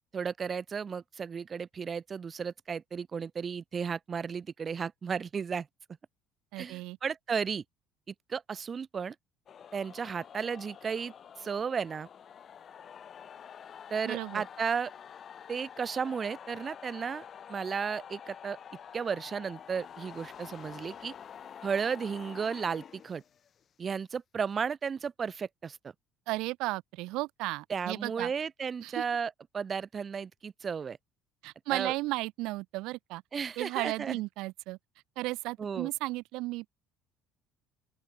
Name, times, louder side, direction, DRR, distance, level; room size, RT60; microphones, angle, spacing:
voice 1, 0.1-5.7 6.6-7.6 8.3-9.1 9.7-12.1 13.9-14.9 15.5-18.6 18.9-21.1 21.6-23.2 23.8-25.9 27.7-31.0 31.7-31.9 33.3-34.2 35.6-35.9, right 6 dB, 20° right, 0.7 m, -34 dB
voice 2, 6.5-7.0 14.1-14.4 26.3-28.3 28.8-29.0 31.4-33.2 33.6-34.8 35.2-36.7, right 20 dB, 65° right, 0.4 m, -34 dB
sound 1, 9.5-23.6, left 8 dB, 30° left, 1.2 m, -48 dB
open air
cardioid pair, 180°, 0 cm